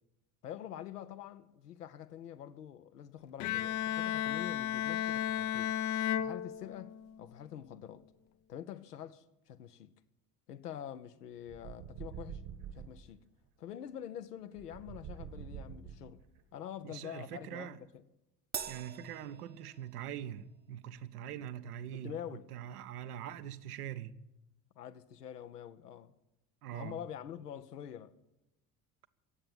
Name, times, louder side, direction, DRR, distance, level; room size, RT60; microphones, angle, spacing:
voice 1, 0.4-5.8 6.2-8.0 8.5-9.9 10.5-12.4 12.7-13.2 13.6-16.2 16.5-17.8 21.9-22.5 24.8-26.1 26.7-28.1, left 10 dB, 85° left, 0.8 m, -46 dB
Bowed string instrument, 3.4-7.1, left 10 dB, 55° left, 0.7 m, -34 dB
sound 1, 11.5-13.1 14.6-16.4, right 8 dB, 55° right, 1.4 m, -46 dB
voice 2, 16.8-17.8 18.7-22.2 22.5-24.2 26.6-27.0, right 10 dB, 75° right, 0.9 m, -43 dB
Crash cymbal, 18.5-20.2, right 7 dB, 20° right, 0.8 m, -43 dB
17.0 x 7.8 x 8.9 m
figure-of-eight pair, 60°, 46 cm